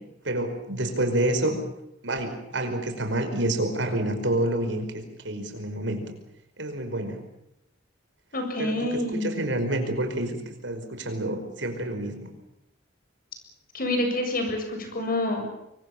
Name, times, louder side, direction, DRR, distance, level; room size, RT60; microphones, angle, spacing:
voice 1, 0.2-1.6 2.0-6.0 6.6-7.2 8.6-8.7 9.1-10.4 10.6-12.3, right 1 dB, 75° right, 6 dB, 5.2 m, -28 dB
voice 2, 8.3-9.4 13.7-15.5, left 1 dB, 50° left, 5 dB, 7.5 m, -27 dB
25.0 x 24.0 x 7.4 m, 0.82 s
head